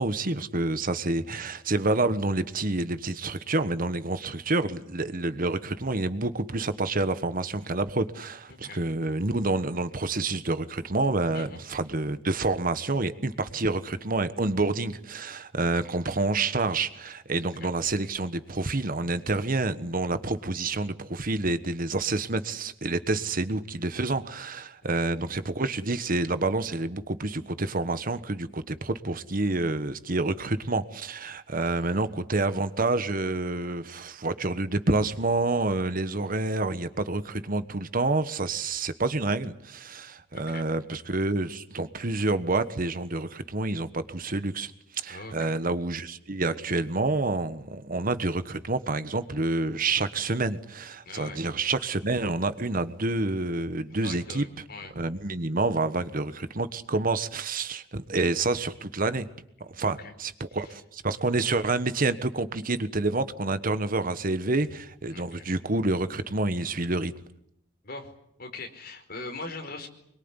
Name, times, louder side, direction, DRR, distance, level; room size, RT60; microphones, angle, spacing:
voice 1, 0.0-54.4 54.9-59.3 59.6-67.1, right 2 dB, 50° right, 12 dB, 1.3 m, -28 dB
voice 2, 8.5-8.8 11.3-11.6 17.5-17.7 24.9-25.1 31.6-32.0 40.3-40.7 45.1-45.5 51.0-51.4 53.9-54.9 59.8-60.1 60.6-60.7 65.1-65.4 67.8-68.1 68.4-69.9, left 3 dB, 55° left, 4 dB, 4.8 m, -41 dB
25.0 x 22.5 x 9.8 m, 0.74 s
head